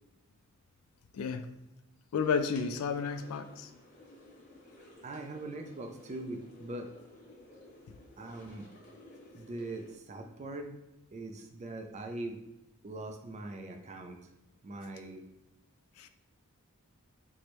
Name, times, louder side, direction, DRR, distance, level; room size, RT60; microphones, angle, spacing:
voice 1, 1.1-1.5 2.1-3.7 16.0-16.1, left 5 dB, 70° left, 9 dB, 0.3 m, -32 dB
sound 1, 2.2-10.0, left 1 dB, 35° left, 0.8 m, -54 dB
voice 2, 4.7-6.9 8.2-8.7 9.3-10.7 11.1-12.4 12.8-14.3 14.6-15.2, right 2 dB, 30° right, 4 dB, 0.4 m, -42 dB
4.3 x 2.1 x 3.0 m, 0.93 s
head